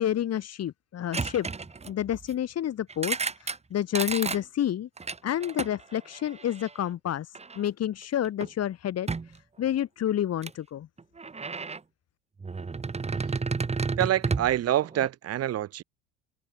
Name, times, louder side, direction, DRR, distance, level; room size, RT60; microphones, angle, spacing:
voice 1, 0.0-1.5 1.9-4.9 5.2-10.9, left 11 dB, 40° left, 2.7 m, -29 dB
sound 1, 1.1-2.3 2.9-3.6 3.9-4.4 5.0-6.7 7.3-7.7 8.0-8.5 9.1-9.4 10.4-10.5 11.0-11.8 12.4-15.1, right 4 dB, 15° right, 1.7 m, -32 dB
voice 2, 14.0-15.8, right 12 dB, 40° right, 1.4 m, -26 dB
hypercardioid pair, 80°, 37 cm